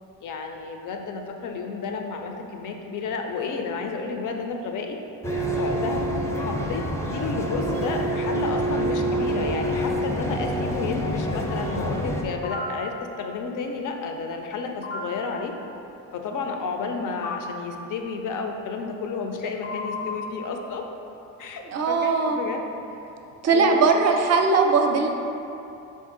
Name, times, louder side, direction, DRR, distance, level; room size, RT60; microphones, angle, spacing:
voice 1, 0.2-5.0 5.6-6.1 6.4-6.8 7.1-15.5 16.1-20.8 21.4-22.6 23.4-23.9, left 4 dB, 60° left, 4 dB, 0.5 m, -31 dB
sound 1, 5.2-12.2, right 1 dB, 10° left, 0.4 m, -27 dB
sound 2, 12.4-12.7 14.8-15.0 17.2-17.4 19.6-20.2, left 4 dB, 85° left, 0.8 m, -32 dB
voice 2, 21.7-22.4 23.4-25.1, right 4 dB, 50° right, 4 dB, 0.5 m, -20 dB
3.5 x 2.6 x 3.7 m, 2.8 s
supercardioid pair, 60°, 35 cm